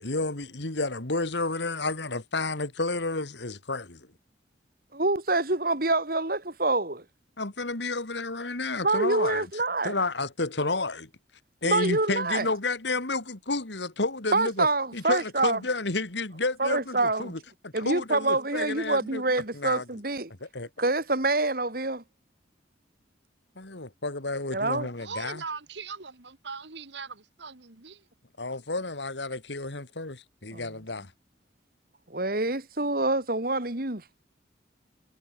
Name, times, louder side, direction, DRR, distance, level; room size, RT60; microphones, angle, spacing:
voice 1, 0.0-4.1 7.4-9.5 9.8-11.1 11.6-14.7 14.9-19.2 19.5-19.8 20.4-20.7 23.6-25.4 28.4-31.1, left 3 dB, 70° left, 2.3 m, -31 dB
voice 2, 4.9-7.0 8.8-9.9 11.6-12.5 14.3-15.6 16.6-17.3 17.7-20.3 20.8-22.0 24.5-24.9 30.5-30.8 32.1-34.0, right 2 dB, 50° right, 2.5 m, -26 dB
voice 3, 25.0-28.0, right 5 dB, 75° right, 1.9 m, -40 dB
head